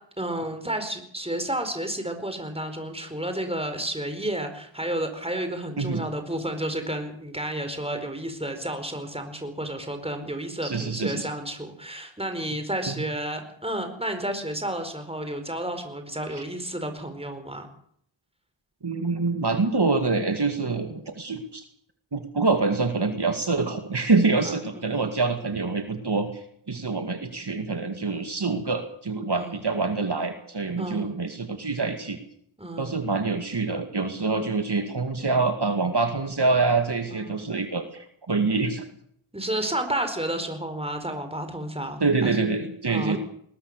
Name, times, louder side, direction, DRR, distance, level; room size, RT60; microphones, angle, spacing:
voice 1, 0.2-17.7 20.7-21.0 24.4-24.9 29.3-29.6 30.8-31.1 32.6-33.0 37.1-37.4 39.3-42.5 42.9-43.2, right 1 dB, 10° right, 7 dB, 4.5 m, -31 dB
voice 2, 10.6-11.3 12.9-13.0 16.3-16.4 18.8-21.6 22.1-32.2 32.8-38.9 42.0-43.2, right 3 dB, 55° right, 6 dB, 2.4 m, -26 dB
20.5 x 20.5 x 6.7 m, 0.68 s
wide cardioid pair, 60°, 47 cm